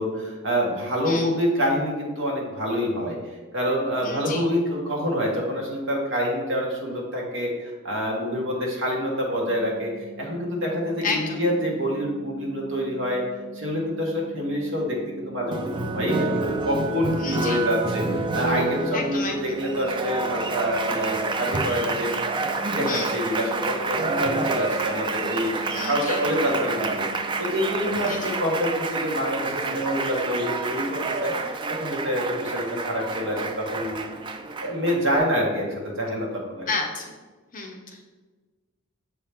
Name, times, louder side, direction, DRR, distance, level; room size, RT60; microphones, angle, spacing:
voice 1, 0.0-9.9 10.2-13.2 13.5-22.3 22.6-27.0 27.4-31.3 31.7-34.2 34.6-36.7, equal, 60° right, -1 dB, 1.4 m, -26 dB
voice 2, 4.0-4.4 11.0-11.4 17.2-17.6 18.9-19.4 22.9-23.1 25.7-26.2 28.0-28.3 36.7-37.2 37.5-38.0, left 4 dB, 40° left, 2 dB, 0.7 m, -31 dB
sound 1, 9.4-28.3, left 1 dB, 10° left, 1.6 m, -44 dB
Applause, 15.5-35.2, right 3 dB, 20° right, 0.3 m, -29 dB
6.6 x 4.3 x 3.5 m, 1.3 s
head